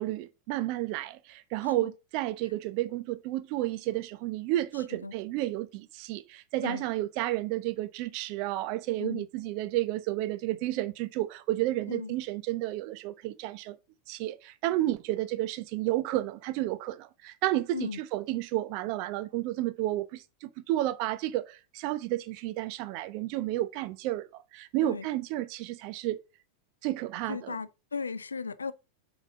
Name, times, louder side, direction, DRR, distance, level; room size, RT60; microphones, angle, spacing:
voice 1, 0.0-13.8 14.1-26.2 26.8-27.6, right 15 dB, 45° right, 0.8 m, -31 dB
voice 2, 1.6-1.9 5.0-5.1 6.6-6.8 9.0-9.3 11.9-12.1 17.7-18.0 24.8-25.1 27.3-28.7, left 5 dB, 75° left, 0.5 m, -36 dB
7.5 x 5.1 x 3.7 m
figure-of-eight pair, 90°, 0 cm